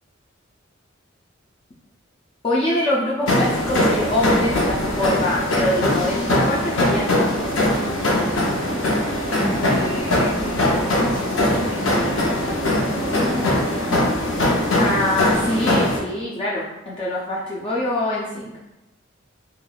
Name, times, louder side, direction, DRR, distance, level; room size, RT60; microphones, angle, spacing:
voice 1, 2.4-7.3 14.8-18.5, left 1 dB, 25° left, -6 dB, 0.3 m, -24 dB
sound 1, 3.3-16.0, left 1 dB, 75° left, 0.6 m, -21 dB
sound 2, 8.3-16.6, right 1 dB, 35° right, 0.5 m, -35 dB
voice 2, 9.3-13.9, right 1 dB, 15° right, -7 dB, 1.0 m, -33 dB
3.2 x 2.3 x 2.2 m, 0.96 s
head